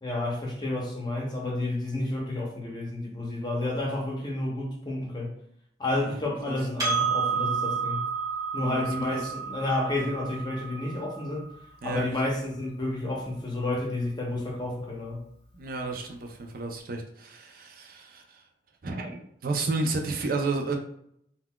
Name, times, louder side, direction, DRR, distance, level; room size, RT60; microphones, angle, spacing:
voice 1, 0.0-5.3 5.8-8.0 8.5-11.5 11.8-15.2, left 2 dB, 25° left, 0.7 m, -30 dB
Percussion, 6.8-11.6, right 5 dB, 20° right, 0.9 m, -30 dB
voice 2, 8.6-9.3 11.8-12.0 15.5-18.4 18.8-20.8, right 3 dB, 55° right, 0.5 m, -32 dB
3.8 x 2.2 x 2.2 m
head